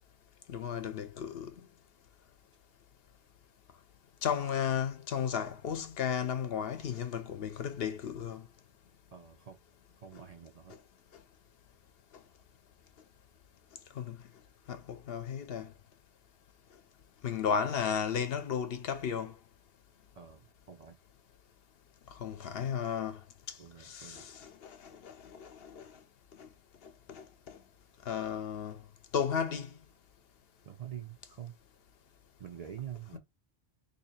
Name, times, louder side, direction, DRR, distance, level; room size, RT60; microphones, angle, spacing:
voice 1, 0.5-1.5 4.2-8.4 14.0-14.2 14.7-15.7 17.2-19.3 22.2-23.2 23.8-26.0 26.4-26.5 26.8-27.6 28.1-28.8 29.1-29.8 33.1-33.2, left 7 dB, 70° left, 0.9 m, -34 dB
voice 2, 9.1-9.6 10.0-10.8 20.2-21.0 23.6-24.3 30.6-31.5 32.4-33.2, right 10 dB, 50° right, 0.5 m, -46 dB
2.8 x 2.8 x 4.1 m
omnidirectional pair, 1.1 m